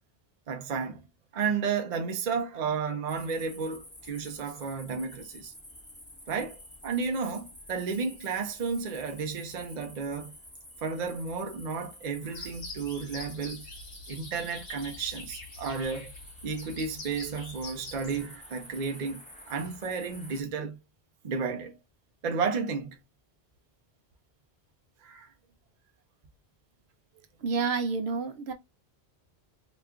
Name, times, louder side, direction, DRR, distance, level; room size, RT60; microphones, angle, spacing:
voice 1, 0.5-1.0 1.3-5.5 6.3-10.4 10.8-13.6 14.1-16.1 16.4-20.8 21.2-21.8 22.2-23.0 25.0-25.3, right 5 dB, 50° right, 0.6 m, -32 dB
sound 1, 3.1-20.4, equal, 5° left, 0.9 m, -50 dB
sound 2, 12.3-18.2, left 3 dB, 85° left, 1.3 m, -44 dB
voice 2, 27.4-28.5, right 4 dB, 75° right, 0.9 m, -29 dB
3.0 x 2.3 x 3.5 m
omnidirectional pair, 1.1 m